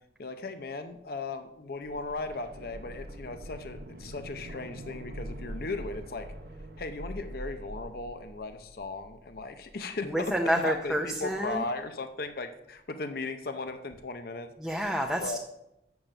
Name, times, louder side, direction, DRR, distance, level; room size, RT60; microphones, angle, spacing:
voice 1, 0.2-6.3 6.8-14.5 15.2-15.4, left 3 dB, 55° left, 9 dB, 0.6 m, -37 dB
sound 1, 1.8-9.6 9.9-10.0, right 1 dB, 60° right, 0.7 m, -43 dB
voice 2, 10.0-11.7 14.6-15.4, equal, ahead, 1 dB, 0.6 m, -29 dB
7.3 x 7.0 x 6.6 m, 0.85 s
head